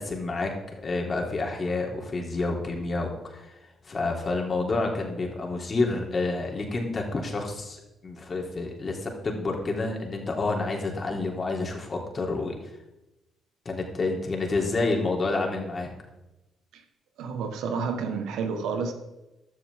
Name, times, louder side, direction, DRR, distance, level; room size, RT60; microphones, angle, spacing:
voice 1, 0.0-3.6 3.8-12.5 13.7-15.9, left 3 dB, 40° left, 1 dB, 3.5 m, -29 dB
voice 2, 17.2-18.9, right 5 dB, 70° right, 6 dB, 1.6 m, -30 dB
14.5 x 12.0 x 3.8 m, 0.96 s
hypercardioid pair, 50°, 0 cm